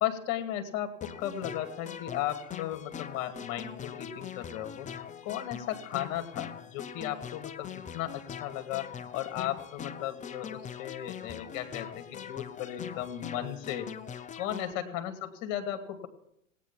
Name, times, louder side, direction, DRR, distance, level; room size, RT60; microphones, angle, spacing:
voice 1, 0.0-13.9 14.4-16.1, left 11 dB, 45° left, 8 dB, 2.4 m, -36 dB
sound 1, 1.0-14.7, left 8 dB, 20° left, 0.8 m, -42 dB
17.5 x 9.2 x 7.3 m, 0.75 s
hypercardioid pair, 100°, 40 cm